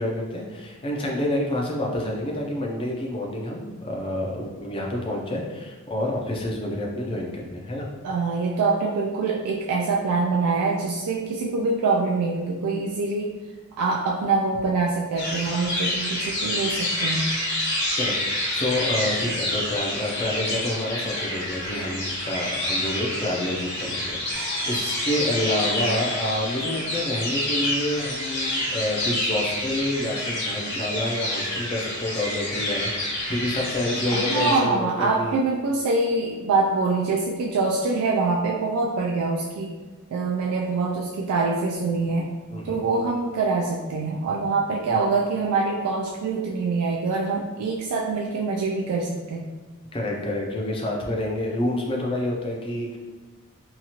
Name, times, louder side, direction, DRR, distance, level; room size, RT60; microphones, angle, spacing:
voice 1, 0.0-7.9 18.0-35.3 42.5-42.8 49.9-53.0, left 1 dB, 25° left, -1 dB, 0.4 m, -28 dB
voice 2, 8.0-13.3 13.8-17.3 34.1-39.7 40.1-42.3 42.6-49.5, right 3 dB, 85° right, -1 dB, 0.3 m, -24 dB
sound 1, 15.1-34.6, left 1 dB, 50° left, 1.0 m, -28 dB
sound 2, 24.3-28.0, equal, 50° right, 0.9 m, -43 dB
2.8 x 2.4 x 2.8 m, 1.3 s
head